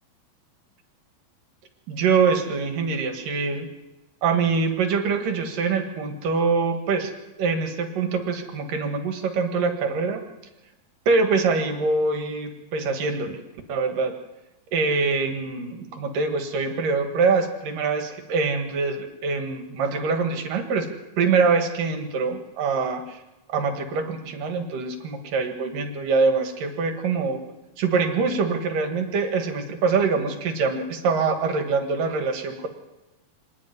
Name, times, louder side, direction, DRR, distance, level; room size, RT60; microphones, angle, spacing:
voice 1, 1.9-3.7 4.2-7.1 7.4-10.2 11.1-13.4 13.7-14.1 14.7-20.9 21.2-23.2 23.5-27.4 27.8-32.7, right 4 dB, 65° right, 5 dB, 3.3 m, -24 dB
26.0 x 11.0 x 9.6 m, 0.99 s
omnidirectional pair, 4.4 m